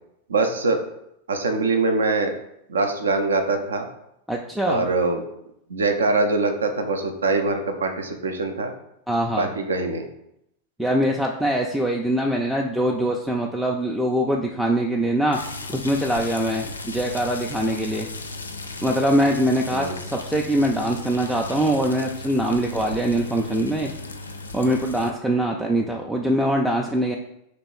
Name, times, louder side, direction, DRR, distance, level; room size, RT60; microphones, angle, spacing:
voice 1, 0.3-0.8 1.3-2.3 2.7-3.9 4.7-5.2 5.7-8.7 9.4-10.1 19.7-20.0, right 3 dB, 70° right, 5 dB, 0.5 m, -23 dB
voice 2, 4.3-4.9 9.1-9.5 10.8-15.4 15.7-18.1 18.8-23.9 24.5-27.2, right 1 dB, ahead, 0 dB, 0.3 m, -23 dB
sound 1, 15.3-25.1, left 3 dB, 75° left, 0.4 m, -36 dB
3.1 x 3.0 x 4.3 m, 0.80 s
figure-of-eight pair, 90°, 0 cm